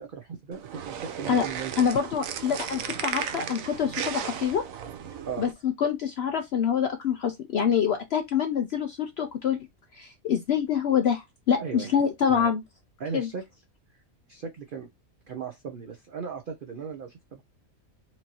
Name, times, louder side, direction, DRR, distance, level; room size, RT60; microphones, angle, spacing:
voice 1, 0.0-1.8 5.3-5.5 11.6-11.9 12.3-12.5 13.0-13.4 14.3-14.9 15.3-17.4, right 6 dB, 50° right, 0.7 m, -37 dB
sound 1, 0.5-5.5, right 8 dB, 75° right, 1.0 m, -35 dB
voice 2, 1.8-4.6 5.4-9.6 9.9-12.6 13.1-13.3, left 7 dB, 60° left, 0.7 m, -26 dB
4.5 x 2.6 x 2.9 m
omnidirectional pair, 1.5 m